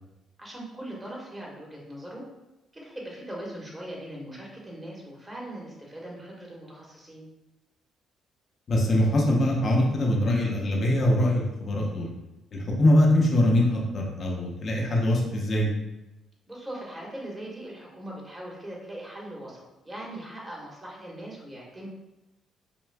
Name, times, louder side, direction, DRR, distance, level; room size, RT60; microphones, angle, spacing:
voice 1, 0.4-2.2 2.7-7.2 16.5-21.9, right 1 dB, 25° right, -3 dB, 1.5 m, -40 dB
voice 2, 8.7-12.1 12.5-15.7, left 1 dB, 50° left, -1 dB, 0.8 m, -23 dB
5.3 x 2.4 x 2.3 m, 0.98 s
hypercardioid pair, 50°, 0 cm